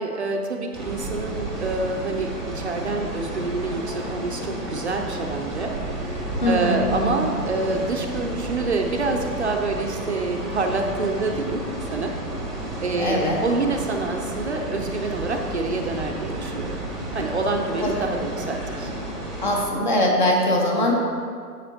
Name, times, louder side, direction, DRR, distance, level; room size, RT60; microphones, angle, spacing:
voice 1, 0.0-5.7 6.0-11.6 11.9-12.1 12.8-16.8 17.1-18.9, right 3 dB, 45° right, 3 dB, 0.6 m, -27 dB
sound 1, 0.7-19.6, right 1 dB, ahead, 0.4 m, -32 dB
voice 2, 6.4-7.3 13.0-13.4 17.8-18.0 19.4-20.9, left 1 dB, 30° left, 0 dB, 0.9 m, -22 dB
10.0 x 7.2 x 2.8 m, 2.2 s
hypercardioid pair, 170°, 48 cm